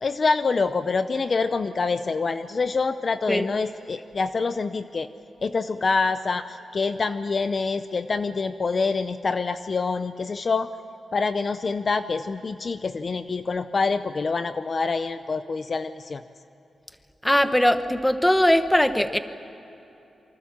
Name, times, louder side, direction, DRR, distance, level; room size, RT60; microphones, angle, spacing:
voice 1, 0.0-5.1 5.4-10.7 11.1-16.2, left 4 dB, 35° left, 11 dB, 0.6 m, -26 dB
voice 2, 17.2-19.2, left 1 dB, 5° left, 9 dB, 1.0 m, -20 dB
27.5 x 25.0 x 7.4 m, 3.0 s
wide cardioid pair, 175°, 0 cm